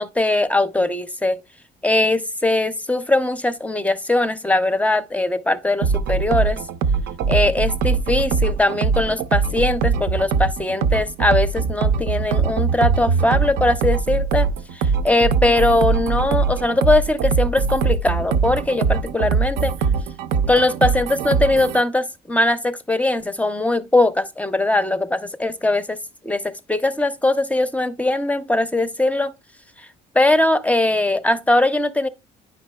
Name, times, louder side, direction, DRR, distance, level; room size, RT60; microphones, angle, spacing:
voice 1, 0.0-1.4 1.8-6.6 7.3-14.5 14.7-19.7 20.5-26.0 26.2-26.4 26.7-29.3 30.1-32.1, left 2 dB, 10° left, 0.5 m, -20 dB
sound 1, 5.8-21.8, right 5 dB, 80° right, 0.5 m, -21 dB
9.4 x 5.2 x 2.2 m
cardioid pair, 110°, 17 cm